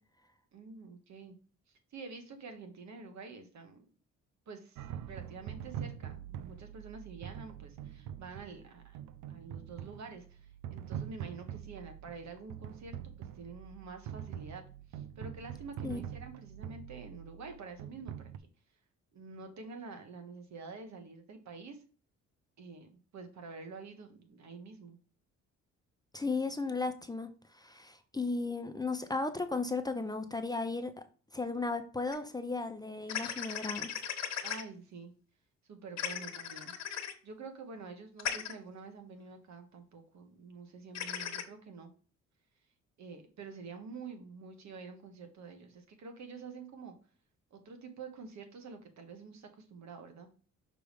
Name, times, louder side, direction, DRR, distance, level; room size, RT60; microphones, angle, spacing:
voice 1, 0.5-1.4 1.9-3.8 4.5-4.8 5.1-9.0 9.3-14.6 14.9-18.3 19.1-21.8 22.6-25.0 34.4-35.1 35.7-36.7 37.2-41.9 43.0-46.9 47.5-50.3, right 4 dB, 65° right, 6 dB, 1.6 m, -48 dB
sound 1, 4.8-18.4, right 10 dB, 85° right, 0.6 m, -44 dB
voice 2, 26.1-30.9 31.3-33.9, left 3 dB, 15° left, 7 dB, 0.7 m, -35 dB
sound 2, 32.1-32.2 33.1-34.6 36.0-37.1 38.2-38.5 40.9-41.4, left 9 dB, 60° left, 1.1 m, -37 dB
6.0 x 3.4 x 5.1 m, 0.39 s
cardioid pair, 90°, 30 cm